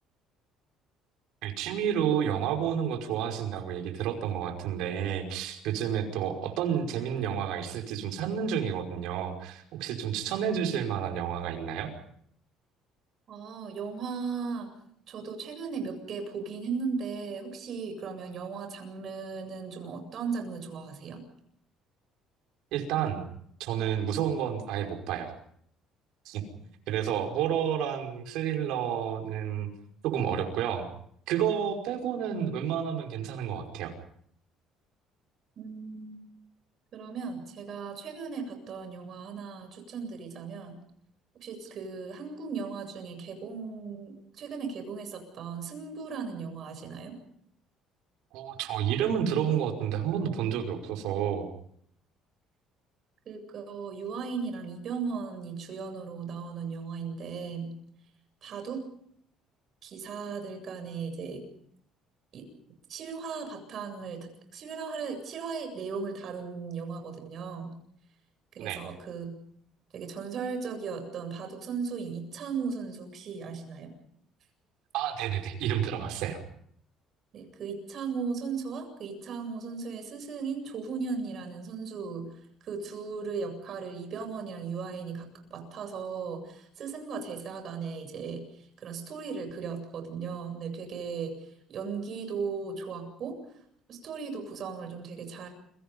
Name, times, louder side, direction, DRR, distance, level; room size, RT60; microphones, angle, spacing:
voice 1, 1.4-11.9 22.7-23.2 23.6-25.3 26.3-26.4 26.9-29.7 30.0-30.9 31.3-33.9 48.3-51.5 68.6-68.8 74.9-76.4, right 9 dB, 80° right, 4 dB, 5.3 m, -30 dB
voice 2, 13.3-14.7 15.1-21.2 35.6-36.2 36.9-40.7 41.4-47.2 53.3-57.8 58.4-58.8 59.8-61.5 62.3-62.5 62.9-67.8 68.5-69.4 69.9-73.9 77.3-82.3 82.6-88.4 88.8-93.4 93.9-95.5, right 5 dB, 50° right, 6 dB, 7.8 m, -37 dB
29.5 x 24.0 x 5.4 m, 0.67 s
cardioid pair, 125°, 0 cm